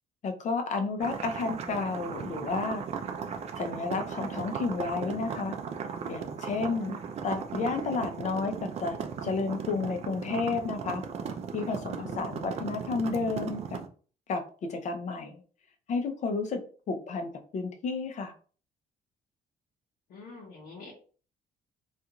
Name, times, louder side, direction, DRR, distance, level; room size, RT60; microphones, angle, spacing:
voice 1, 0.2-2.8 3.6-5.6 6.1-11.0 11.5-13.8 14.3-15.4 15.9-16.6 16.9-18.3, left 4 dB, 50° left, 6 dB, 0.6 m, -32 dB
sound 1, 1.0-13.9, right 6 dB, 40° right, 0.4 m, -37 dB
voice 2, 6.6-6.9 12.0-12.4 20.1-20.9, left 3 dB, 75° left, -5 dB, 0.9 m, -46 dB
2.4 x 2.3 x 2.9 m, 0.40 s
cardioid pair, 115°, 16 cm